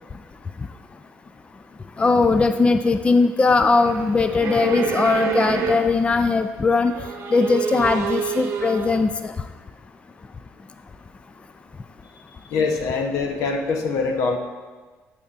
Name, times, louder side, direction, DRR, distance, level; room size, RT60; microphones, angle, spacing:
voice 1, 2.0-6.9 7.3-9.3, left 3 dB, 20° left, 8 dB, 0.3 m, -19 dB
sound 1, 3.7-6.2 6.7-9.0, right 6 dB, 65° right, 0.9 m, -28 dB
voice 2, 12.5-14.4, left 4 dB, 80° left, 4 dB, 0.9 m, -23 dB
8.5 x 8.0 x 2.5 m, 1.4 s
cardioid pair, 95°, 5 cm